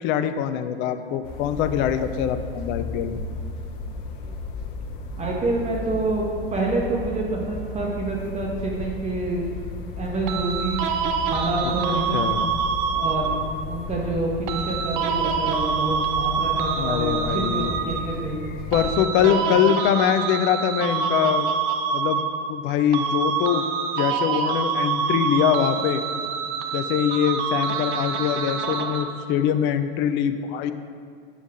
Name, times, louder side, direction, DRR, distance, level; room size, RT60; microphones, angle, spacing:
voice 1, 0.0-3.2 12.1-12.5 16.8-17.7 18.7-21.5 21.9-22.2 22.5-23.7 24.0-26.0 26.7-30.7, left 9 dB, 40° left, 9 dB, 0.5 m, -23 dB
sound 1, 1.2-19.0, left 3 dB, 60° left, 1.0 m, -35 dB
voice 2, 5.2-9.5 10.0-10.8 11.2-12.2 12.9-13.3 13.7-18.4 19.2-19.4, right 2 dB, 25° right, -1 dB, 1.5 m, -27 dB
sound 2, 10.3-13.6 14.5-18.3 18.7-22.7 22.9-29.3, right 6 dB, 45° right, 0.8 m, -26 dB
8.4 x 7.1 x 3.8 m, 2.4 s
hypercardioid pair, 85°, 29 cm